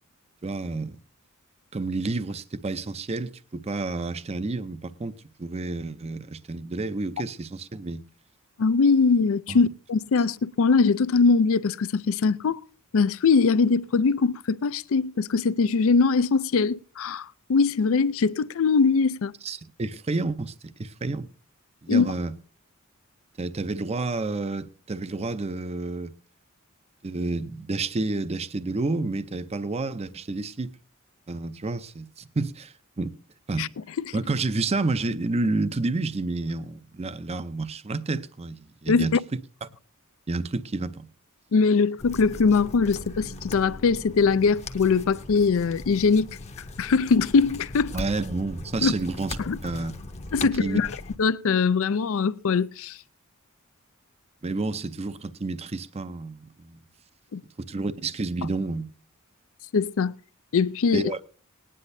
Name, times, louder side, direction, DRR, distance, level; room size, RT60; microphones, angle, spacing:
voice 1, 0.4-1.0 1.7-8.0 9.5-9.6 19.4-21.3 21.8-22.3 23.4-26.1 27.0-30.7 31.3-33.1 33.5-33.7 34.1-39.2 39.6-39.7 40.3-41.1 47.9-49.4 49.6-49.9 50.6-50.8 54.4-56.8 57.6-58.9 60.9-61.2, right 3 dB, 30° right, 0.5 m, -30 dB
voice 2, 8.6-12.6 12.9-19.3 21.9-22.1 33.6-33.7 34.1-34.2 38.9-39.2 41.5-46.3 46.8-48.0 48.8-48.9 49.4-49.6 50.3-50.9 51.2-53.0 57.3-57.4 59.7-60.1 60.5-61.1, left 4 dB, 65° left, 0.4 m, -22 dB
sound 1, 42.0-51.2, left 2 dB, 30° left, 0.8 m, -39 dB
20.0 x 9.9 x 2.6 m
head